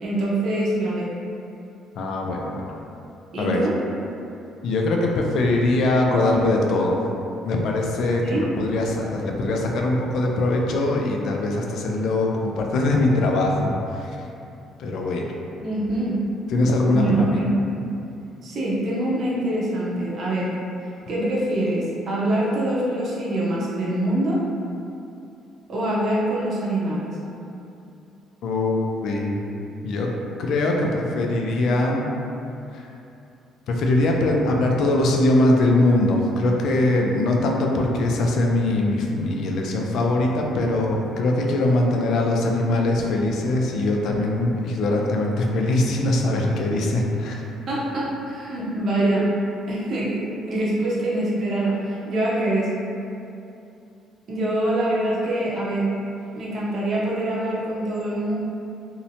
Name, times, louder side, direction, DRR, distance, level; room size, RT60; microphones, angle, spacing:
voice 1, 0.0-1.1 3.3-3.7 8.2-8.4 15.6-16.2 16.9-17.6 18.4-20.5 21.1-24.4 25.7-27.1 47.7-49.3 49.7-52.7 54.3-55.9 56.4-58.4, right 1 dB, 50° right, -6 dB, 0.6 m, -24 dB
voice 2, 2.0-2.6 3.4-3.6 4.6-7.0 7.4-14.1 14.8-15.3 16.5-17.4 28.4-29.3 29.8-30.1 30.4-32.0 32.7-32.9 33.7-47.5, left 2 dB, 65° left, 0 dB, 0.3 m, -22 dB
2.7 x 2.1 x 2.7 m, 2.7 s
cardioid pair, 120°, 0 cm